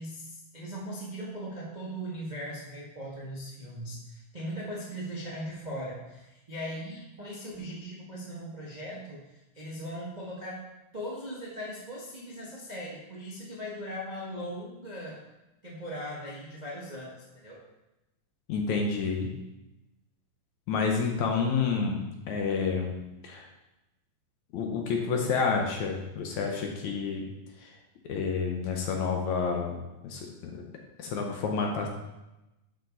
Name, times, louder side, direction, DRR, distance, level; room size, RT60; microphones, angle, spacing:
voice 1, 0.0-10.6 10.9-15.2 15.6-17.6, equal, 40° right, -6 dB, 0.6 m, -39 dB
voice 2, 18.5-19.3 20.7-23.0 23.2-23.5 24.5-27.3 28.1-29.8 30.0-30.3 30.5-30.6 31.0-31.9, left 5 dB, 70° left, 1 dB, 2.1 m, -29 dB
12.5 x 5.1 x 4.0 m, 0.97 s
omnidirectional pair, 4.0 m